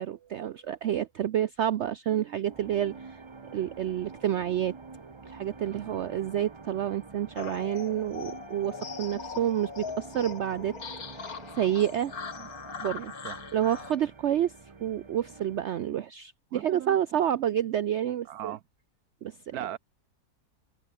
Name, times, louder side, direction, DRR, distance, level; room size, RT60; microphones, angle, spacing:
voice 1, 0.0-3.2 3.5-4.8 5.2-10.8 11.5-12.1 12.8-13.1 13.5-14.5 14.8-18.6 19.2-19.4, right 10 dB, 60° right, 0.8 m, -29 dB
sound 1, 2.4-15.8, right 4 dB, 25° right, 0.8 m, -47 dB
sound 2, 7.4-13.9, left 6 dB, 70° left, 2.4 m, -40 dB
voice 2, 16.5-17.0 18.3-18.6 19.5-19.8, right 12 dB, 75° right, 1.2 m, -39 dB
omnidirectional pair, 1.6 m